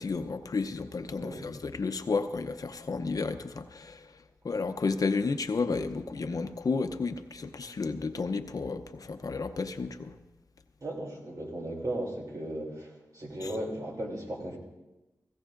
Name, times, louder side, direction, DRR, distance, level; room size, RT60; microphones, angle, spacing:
voice 1, 0.0-4.1 4.4-10.2 13.4-13.5, left 4 dB, 65° left, 9 dB, 0.7 m, -32 dB
voice 2, 1.1-1.4 10.8-12.9 13.1-14.6, right 1 dB, 60° right, -1 dB, 3.0 m, -36 dB
17.0 x 16.5 x 2.6 m, 1.0 s
cardioid pair, 55°, 7 cm